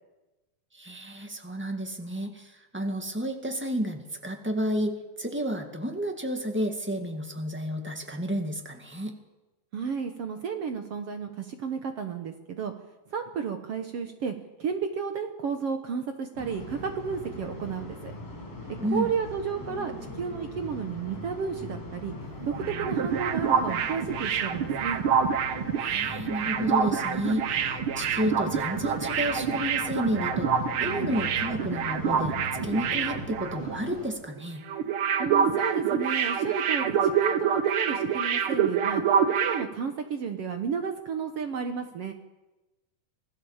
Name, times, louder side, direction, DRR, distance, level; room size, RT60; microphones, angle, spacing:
voice 1, 0.7-9.2 18.8-19.1 25.8-30.5 30.8-34.6, equal, 10° right, 4 dB, 0.5 m, -31 dB
voice 2, 9.7-12.7 13.1-14.3 14.6-18.1 18.9-22.1 22.4-25.0 35.2-39.0 39.3-42.1, right 6 dB, 60° right, 6 dB, 1.7 m, -32 dB
sound 1, 16.4-34.1, left 2 dB, 45° left, 6.7 m, -40 dB
sound 2, 22.4-34.0 34.2-34.4 34.7-39.6, right 7 dB, 75° right, 1.2 m, -27 dB
26.0 x 17.5 x 7.3 m, 1.1 s
omnidirectional pair, 4.1 m